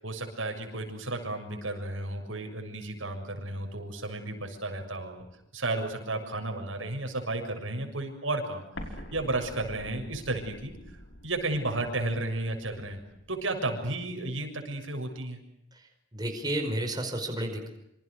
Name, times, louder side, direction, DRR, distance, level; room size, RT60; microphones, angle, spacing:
voice 1, 0.0-5.2 5.5-10.7 11.2-13.0 13.3-15.4, right 2 dB, 85° right, 4 dB, 7.0 m, -33 dB
Explosion, 8.7-13.5, left 1 dB, 65° left, 5.3 m, -46 dB
voice 2, 15.7-17.7, right 1 dB, 20° right, 4 dB, 5.1 m, -32 dB
27.5 x 27.0 x 6.6 m, 0.80 s
head